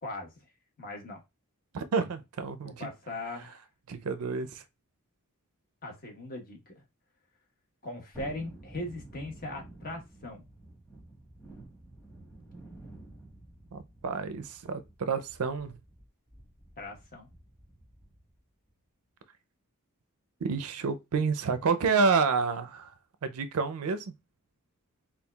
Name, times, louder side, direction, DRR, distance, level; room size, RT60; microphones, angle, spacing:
voice 1, 0.8-1.2 2.6-3.6 5.8-6.7 7.8-10.5 16.8-17.3, left 2 dB, 40° left, 1.2 m, -39 dB
voice 2, 1.7-2.9 3.9-4.6 13.7-15.7 20.4-22.9 23.2-24.1, right 5 dB, 80° right, 0.5 m, -29 dB
Thunderstorm, 8.1-18.4 18.7-18.8, right 2 dB, 10° left, 1.3 m, -51 dB
5.3 x 2.4 x 2.3 m
head